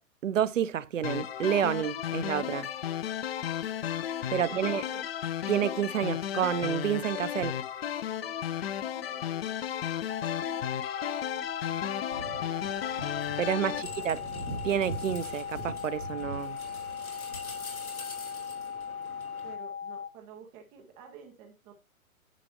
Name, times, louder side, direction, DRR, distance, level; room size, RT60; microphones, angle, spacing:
voice 1, 0.2-2.7 4.3-4.8 5.5-7.6 13.4-14.2 14.6-16.6, right 9 dB, 65° right, 0.7 m, -29 dB
sound 1, 1.0-13.8, left 10 dB, 45° left, 0.6 m, -34 dB
voice 2, 4.3-5.1 8.2-10.7 13.5-14.3 19.4-21.7, right 5 dB, 5° right, 0.4 m, -52 dB
sound 2, 10.1-20.1, left 7 dB, 65° left, 1.5 m, -38 dB
sound 3, 12.1-19.5, equal, 85° left, 3.1 m, -42 dB
10.0 x 6.8 x 2.9 m
figure-of-eight pair, 120°, 42 cm